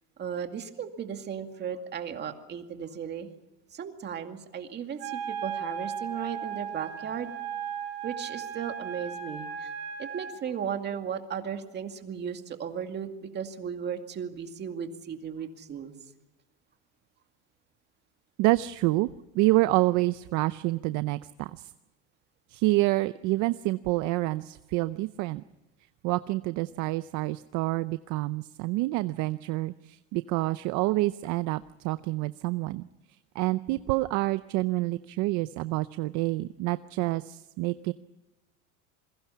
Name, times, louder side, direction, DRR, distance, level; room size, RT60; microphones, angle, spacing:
voice 1, 0.2-3.3 3.7-7.3 8.0-9.7 10.0-15.9 23.4-23.5, right 7 dB, 30° right, 6 dB, 2.3 m, -36 dB
Wind instrument woodwind instrument, 5.0-10.4, right 8 dB, 80° right, 5.2 m, -36 dB
voice 2, 18.4-19.1 19.3-21.7 22.5-25.4 26.0-32.9 33.3-37.9, right 19 dB, 55° right, 14 dB, 0.7 m, -27 dB
27.5 x 22.0 x 5.7 m, 1.0 s
cardioid pair, 145°, 34 cm